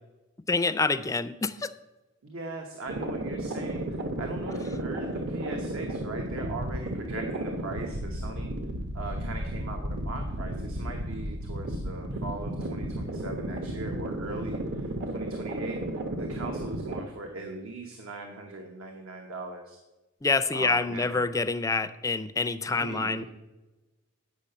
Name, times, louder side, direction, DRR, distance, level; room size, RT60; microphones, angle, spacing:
voice 1, 0.5-1.7 20.2-23.2, left 3 dB, 15° left, 11 dB, 0.4 m, -27 dB
voice 2, 2.2-8.5 8.9-15.8 16.2-19.8 20.5-21.2 22.7-23.2, right 2 dB, 75° right, 3 dB, 1.0 m, -40 dB
sound 1, 2.9-17.0, right 1 dB, 55° right, 0.9 m, -33 dB
8.4 x 5.6 x 6.6 m, 1.1 s
head